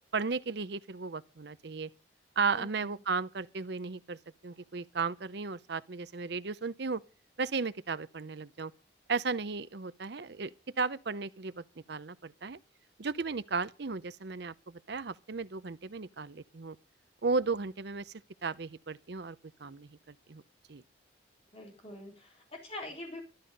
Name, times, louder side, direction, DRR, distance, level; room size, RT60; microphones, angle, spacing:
voice 1, 0.1-1.9 2.4-4.2 4.4-7.0 7.4-8.7 9.1-12.6 13.0-16.8 17.2-18.1 18.4-20.4 20.7-20.8, right 4 dB, 60° right, 0.7 m, -35 dB
voice 2, 2.5-2.9 21.5-23.2, left 1 dB, 30° left, 3.8 m, -44 dB
12.5 x 11.5 x 5.3 m
head